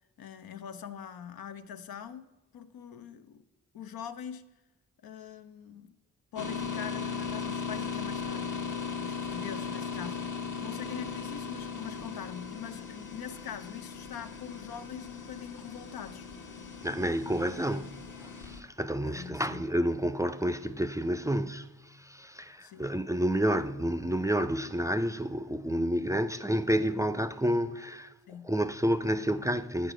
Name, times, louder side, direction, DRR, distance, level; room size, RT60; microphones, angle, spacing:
voice 1, 0.2-2.3 2.5-3.4 3.7-4.5 5.0-6.0 6.3-8.5 9.0-16.2 19.0-19.6 22.6-22.9 28.3-28.5, left 8 dB, 85° left, 0.6 m, -43 dB
sound 1, 6.4-18.6, left 5 dB, 55° left, 1.0 m, -38 dB
voice 2, 16.8-28.1 28.4-29.9, equal, 10° right, 0.4 m, -30 dB
8.9 x 4.7 x 5.0 m
cardioid pair, 45°, 35 cm